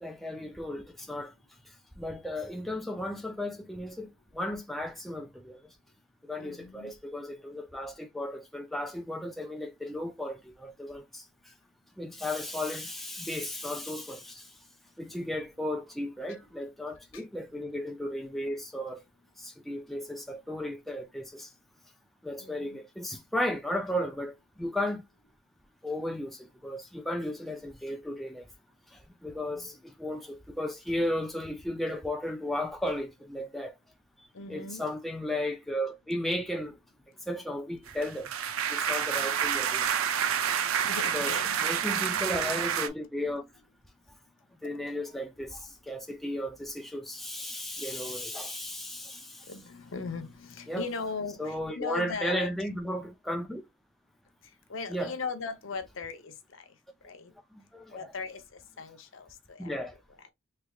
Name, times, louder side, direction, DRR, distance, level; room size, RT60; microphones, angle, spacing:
voice 1, 0.0-1.3 2.0-5.6 6.2-11.2 12.0-14.5 15.0-19.0 19.4-21.5 22.2-25.0 25.8-28.5 29.2-33.8 34.5-36.8 37.3-38.3 38.7-39.9 41.1-41.3 41.6-43.4 44.6-49.5 50.7-50.9 51.4-53.6 54.9-55.1 57.5-58.1 59.6-59.9, left 1 dB, ahead, 0.4 m, -35 dB
voice 2, 6.3-6.9 16.3-16.4 17.0-17.2 22.4-22.8 29.3-29.7 34.3-34.8 40.7-41.6 49.4-52.5 54.7-56.7 57.0-57.3 57.9-59.8, left 4 dB, 65° left, 0.7 m, -39 dB
sound 1, 37.9-42.9, right 8 dB, 75° right, 0.4 m, -28 dB
3.3 x 3.2 x 2.3 m
head